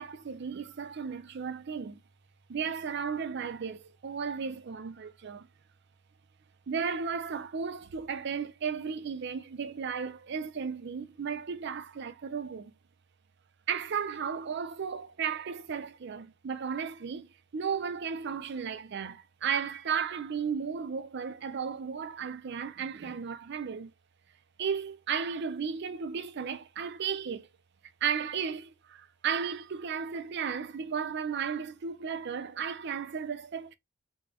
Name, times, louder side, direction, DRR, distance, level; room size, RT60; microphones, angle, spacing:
voice 1, 0.0-2.0 2.5-5.5 6.7-12.7 13.7-23.9 24.6-27.5 28.0-33.7, right 6 dB, 55° right, 0.4 m, -34 dB
3.7 x 2.2 x 3.3 m
head